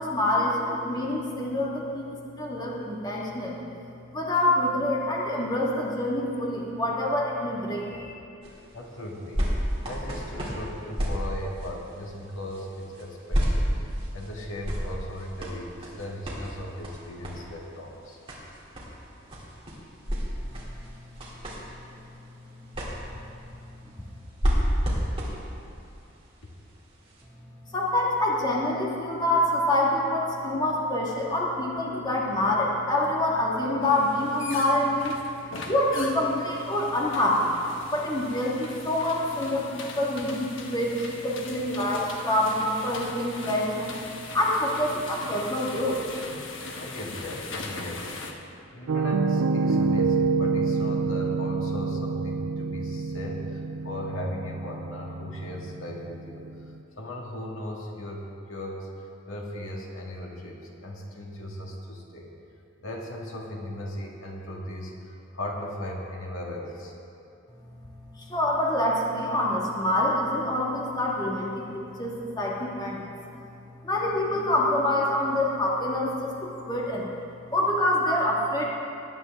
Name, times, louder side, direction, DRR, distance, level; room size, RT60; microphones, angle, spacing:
voice 1, 0.0-3.6 4.1-8.1 27.7-35.1 35.7-37.6 37.9-43.9 44.3-46.0 68.1-71.6 72.0-73.0 73.8-77.1 77.5-78.7, left 1 dB, 20° left, -3 dB, 1.5 m, -26 dB
sound 1, 8.4-27.2 27.9-28.0, equal, 25° right, 2.7 m, -32 dB
voice 2, 8.7-9.5 9.8-13.7 14.1-18.2 24.7-24.8 46.8-48.2 48.7-56.7 57.0-58.9 59.3-62.3 62.8-67.0, left 1 dB, 80° left, -1 dB, 1.8 m, -37 dB
sound 2, 33.8-48.3, left 3 dB, 65° left, 1.1 m, -40 dB
Piano, 48.9-56.7, right 4 dB, 75° right, 0.5 m, -27 dB
20.0 x 9.8 x 3.5 m, 2.6 s
head